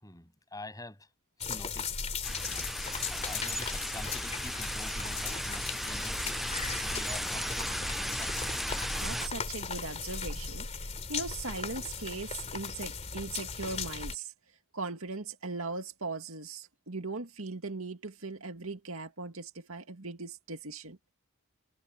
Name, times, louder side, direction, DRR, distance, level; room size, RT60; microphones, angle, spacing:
voice 1, 0.0-1.1 1.4-1.9 2.5-2.7 3.1-6.5 6.8-8.6, left 2 dB, 15° left, 7.7 m, -47 dB
sound 1, 1.4-14.2, left 5 dB, 30° left, 2.7 m, -37 dB
sound 2, 2.2-9.3, equal, ahead, 0.3 m, -36 dB
voice 2, 9.0-14.3 14.7-21.0, right 3 dB, 75° right, 2.2 m, -39 dB
head